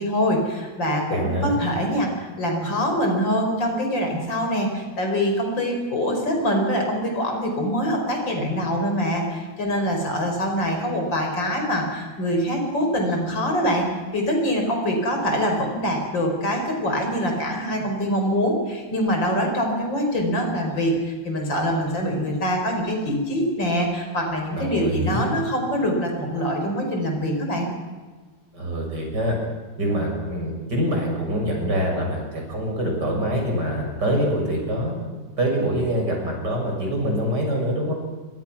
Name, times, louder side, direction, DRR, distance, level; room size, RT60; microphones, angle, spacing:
voice 1, 0.0-13.9 14.1-27.7, equal, 90° left, 3 dB, 5.8 m, -24 dB
voice 2, 1.1-1.5 24.5-25.3 28.5-29.4 29.8-35.0 35.4-37.9, equal, 65° right, 0 dB, 7.5 m, -25 dB
27.5 x 24.0 x 6.2 m, 1.4 s
omnidirectional pair, 2.0 m